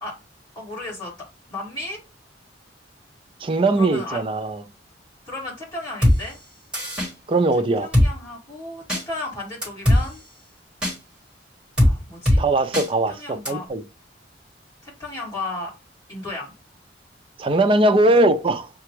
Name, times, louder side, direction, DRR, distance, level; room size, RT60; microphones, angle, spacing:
voice 1, 0.6-1.1 1.5-2.0 3.8-4.2 5.3-6.4 7.8-10.2 11.8-12.4 13.2-13.7 14.8-15.7 16.1-16.5, left 2 dB, 20° left, 2.1 m, -34 dB
voice 2, 3.4-4.6 7.3-7.9 12.4-13.8 17.4-18.7, right 2 dB, 30° right, 0.4 m, -20 dB
Drum kit, 6.0-6.2 6.7-7.1 7.9-8.1 8.9-9.0 9.6-10.0 10.8-10.9 11.8-11.9 12.3-12.4 12.7-12.9 13.5-13.6, left 1 dB, 5° right, 1.6 m, -17 dB
6.6 x 2.3 x 3.0 m
head